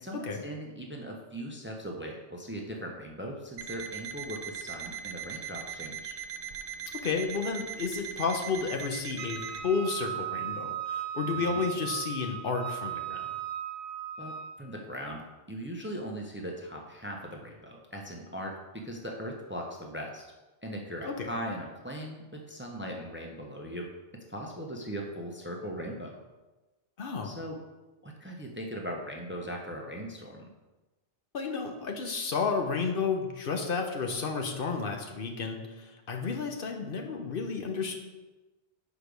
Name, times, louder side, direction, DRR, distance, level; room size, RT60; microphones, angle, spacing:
voice 1, 0.0-6.2 11.3-11.6 14.2-15.2 15.5-20.3 20.6-26.2 27.2-27.6 28.0-30.5, equal, 15° right, 1 dB, 0.7 m, -39 dB
Alarm, 3.6-9.6, right 7 dB, 65° right, 0.8 m, -40 dB
voice 2, 7.0-13.3 21.0-21.3 27.0-27.4 31.3-38.0, left 5 dB, 60° left, 3 dB, 0.9 m, -32 dB
Wind instrument woodwind instrument, 9.2-14.5, right 10 dB, 85° right, 1.1 m, -36 dB
6.5 x 4.8 x 5.2 m, 1.1 s
omnidirectional pair, 1.1 m